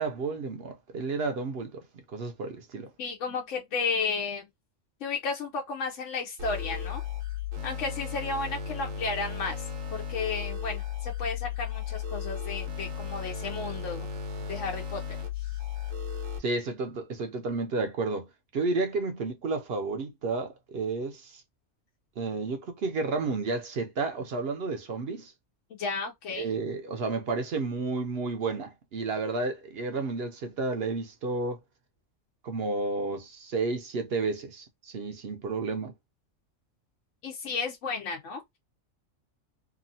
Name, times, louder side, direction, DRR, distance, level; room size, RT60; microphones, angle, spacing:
voice 1, 0.0-1.8 2.1-2.9 16.4-18.3 18.5-21.4 22.2-25.3 26.3-31.6 32.4-35.9, right 3 dB, 60° right, 0.8 m, -31 dB
voice 2, 3.0-4.4 5.0-7.0 7.6-14.1 14.5-15.2 25.8-26.5 37.2-38.6, left 4 dB, 75° left, 0.9 m, -33 dB
sound 1, 6.4-16.4, left 7 dB, 85° right, 1.2 m, -35 dB
2.8 x 2.4 x 2.6 m
omnidirectional pair, 1.3 m